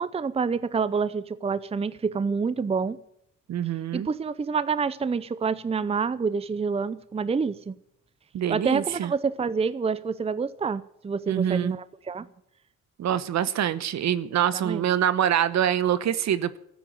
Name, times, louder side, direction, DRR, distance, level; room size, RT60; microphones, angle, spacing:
voice 1, 0.0-3.0 3.9-7.7 8.5-12.3 14.5-14.9, right 5 dB, 20° right, 0.6 m, -27 dB
voice 2, 3.5-4.1 8.3-9.1 11.3-11.8 13.0-16.6, right 10 dB, 65° right, 1.0 m, -25 dB
13.0 x 9.5 x 9.3 m
cardioid pair, 90°, 30 cm